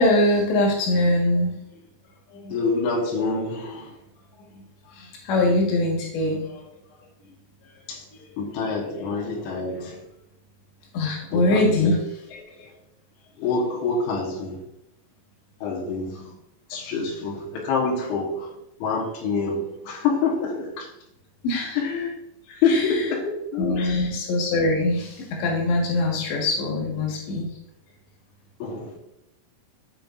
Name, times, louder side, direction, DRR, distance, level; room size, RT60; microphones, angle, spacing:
voice 1, 0.0-1.6 2.3-2.5 4.9-6.7 10.9-12.0 21.4-21.8 22.7-23.0 23.6-27.5, left 2 dB, 75° left, 4.0 m, -23 dB
voice 2, 2.5-4.0 7.9-8.0 8.4-10.0 11.3-12.0 12.3-12.7 13.4-14.6 15.6-16.3 16.7-20.9 21.8-22.2 22.5-24.1 28.6-28.9, left 4 dB, 90° left, 3.9 m, -27 dB
15.5 x 5.4 x 2.6 m
omnidirectional pair, 5.3 m